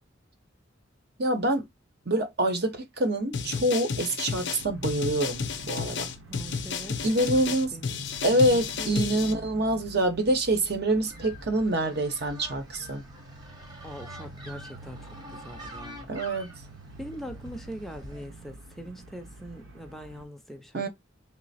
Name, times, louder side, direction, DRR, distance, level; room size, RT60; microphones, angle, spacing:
voice 1, 1.2-1.7 2.1-6.1 7.0-7.7 8.2-13.0 16.1-16.5 20.7-20.9, right 1 dB, 55° right, 0.9 m, -26 dB
sound 1, 3.3-9.3, left 5 dB, 60° left, 0.6 m, -32 dB
sound 2, 4.6-20.2, right 2 dB, 85° right, 0.9 m, -47 dB
voice 2, 6.2-8.0 8.3-9.3 13.8-16.1 17.0-20.9, equal, ahead, 0.5 m, -42 dB
sound 3, 10.9-18.3, equal, 20° right, 1.0 m, -46 dB
3.2 x 2.0 x 4.0 m
head